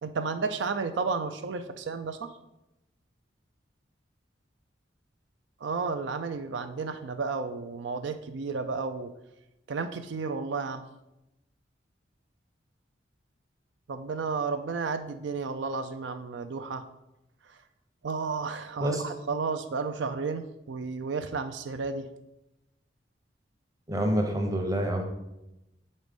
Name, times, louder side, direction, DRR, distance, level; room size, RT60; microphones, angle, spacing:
voice 1, 0.0-2.3 5.6-9.1 9.7-10.8 13.9-16.8 18.0-22.1, right 4 dB, 75° right, 9 dB, 0.4 m, -32 dB
voice 2, 23.9-25.0, right 1 dB, 20° right, 3 dB, 0.8 m, -27 dB
6.3 x 4.0 x 5.3 m, 0.93 s
head